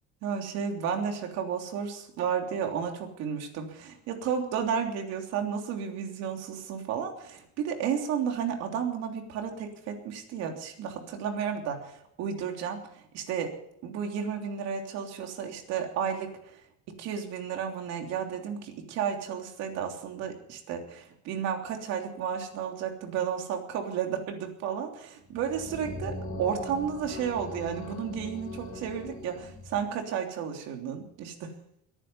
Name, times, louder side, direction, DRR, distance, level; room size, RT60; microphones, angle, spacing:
voice 1, 0.2-13.5 13.8-16.3 17.0-31.5, right 7 dB, 60° right, 3 dB, 3.3 m, -32 dB
sound 1, 25.2-29.9, left 1 dB, 30° left, 4.3 m, -40 dB
22.0 x 10.0 x 5.7 m, 0.73 s
cardioid pair, 160°, 29 cm